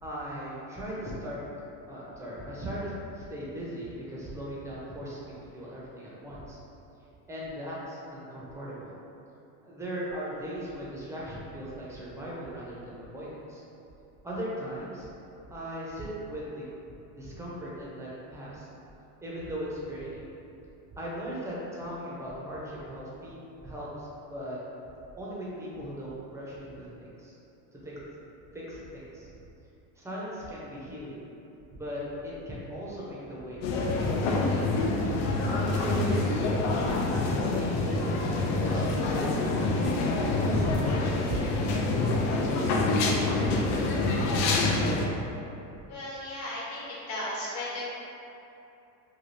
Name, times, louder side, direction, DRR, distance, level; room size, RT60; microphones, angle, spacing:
voice 1, 0.0-1.4 1.9-6.6 7.3-9.0 9.6-13.6 14.2-15.1 15.5-16.6 17.1-18.7 19.2-20.2 21.0-24.6 25.2-27.4 27.7-27.9 28.5-29.3 30.0-31.2 31.7-34.4 35.5-39.7 40.0-41.8 42.7-44.5, right 1 dB, 5° right, -7 dB, 0.5 m, -38 dB
sound 1, 33.6-45.1, left 2 dB, 80° left, 0.6 m, -26 dB
voice 2, 45.9-47.8, left 1 dB, 50° left, -7 dB, 1.2 m, -35 dB
3.3 x 2.3 x 2.6 m, 2.8 s
supercardioid pair, 110°, 49 cm